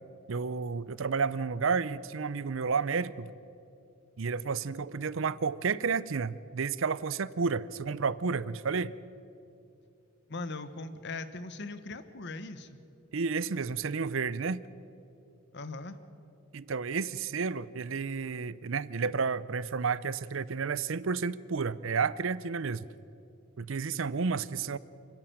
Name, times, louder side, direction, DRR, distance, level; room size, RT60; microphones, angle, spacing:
voice 1, 0.3-3.3 4.2-8.9 13.1-14.6 16.5-22.8 23.6-24.8, right 5 dB, 65° right, 18 dB, 0.6 m, -31 dB
voice 2, 10.3-12.8 15.5-16.0, left 3 dB, 55° left, 12 dB, 1.1 m, -40 dB
28.5 x 10.5 x 9.0 m, 2.7 s
head